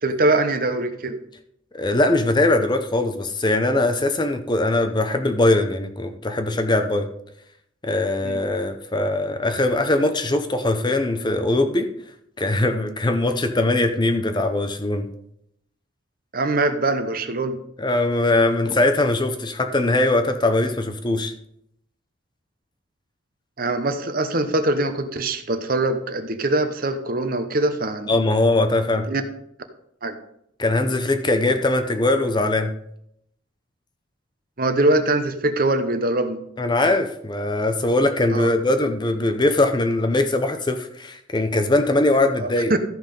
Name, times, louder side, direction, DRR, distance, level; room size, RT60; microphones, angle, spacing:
voice 1, 0.0-1.2 8.2-8.4 16.3-17.6 23.6-28.2 28.9-29.2 30.0-30.2 34.6-36.4 38.3-38.5 42.7-42.8, right 2 dB, 45° right, 8 dB, 0.9 m, -22 dB
voice 2, 1.7-7.1 7.8-11.9 12.4-15.1 17.8-21.3 28.1-29.1 30.6-32.7 36.6-42.7, left 2 dB, 20° left, 8 dB, 0.7 m, -21 dB
13.5 x 5.6 x 5.3 m, 0.75 s
head